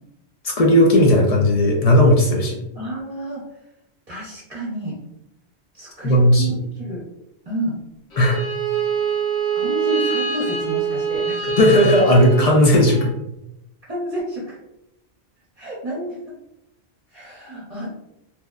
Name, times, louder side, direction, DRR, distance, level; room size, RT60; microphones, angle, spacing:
voice 1, 0.4-2.6 6.0-6.5 8.2-8.4 11.6-13.1, left 1 dB, 55° left, -1 dB, 0.4 m, -15 dB
voice 2, 2.7-3.4 4.1-5.0 5.7-7.0 7.5-7.8 9.5-11.5 13.9-14.6 15.6-16.2 17.1-17.9, right 1 dB, 40° right, -8 dB, 0.9 m, -30 dB
Bowed string instrument, 8.1-13.1, right 6 dB, 80° left, 1.3 m, -24 dB
2.8 x 2.0 x 2.3 m, 0.85 s
omnidirectional pair, 1.1 m